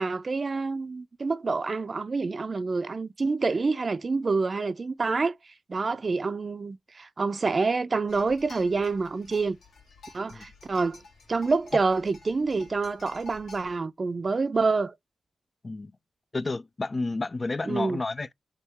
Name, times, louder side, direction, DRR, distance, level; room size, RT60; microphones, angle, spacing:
voice 1, 0.0-5.3 5.7-9.6 10.1-11.0 11.3-14.9 17.7-18.0, right 4 dB, 45° right, 0.4 m, -27 dB
sound 1, 8.1-13.8, left 3 dB, 85° left, 1.8 m, -51 dB
voice 2, 16.3-18.3, left 3 dB, 35° left, 0.3 m, -31 dB
3.6 x 2.3 x 4.1 m
cardioid pair, 55°, 0 cm